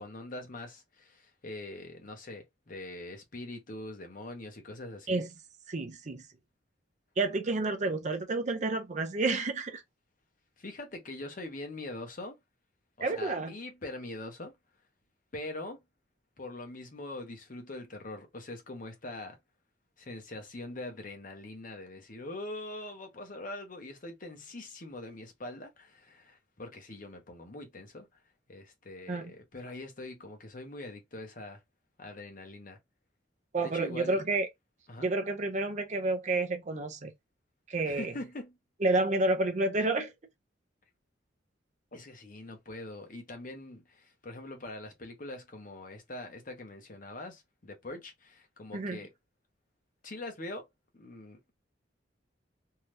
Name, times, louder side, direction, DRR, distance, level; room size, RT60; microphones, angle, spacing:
voice 1, 0.0-5.2 10.6-12.4 13.0-14.6 15.3-15.8 16.4-19.4 20.0-28.2 28.5-31.6 32.0-32.8 33.6-34.2 34.9-35.1 37.8-38.6 41.9-49.1 50.0-50.7 50.9-51.5, left 2 dB, 45° left, 0.8 m, -43 dB
voice 2, 5.7-6.2 7.2-9.8 13.0-13.5 29.1-29.3 33.5-34.5 35.0-37.1 37.7-38.1 38.8-40.1 48.7-49.0, right 2 dB, 40° right, 0.6 m, -30 dB
2.7 x 2.4 x 3.2 m
head